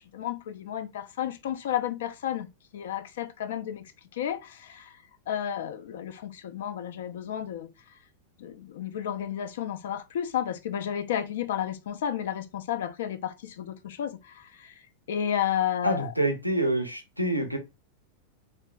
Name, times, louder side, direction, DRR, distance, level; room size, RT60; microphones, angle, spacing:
voice 1, 0.1-2.5 2.7-3.8 4.1-5.0 5.3-7.7 8.4-14.7 15.1-16.1, left 10 dB, 60° left, 0.4 m, -32 dB
voice 2, 15.8-17.6, right 1 dB, 90° right, 0.6 m, -27 dB
3.4 x 2.5 x 2.3 m
figure-of-eight pair, 90°, 0 cm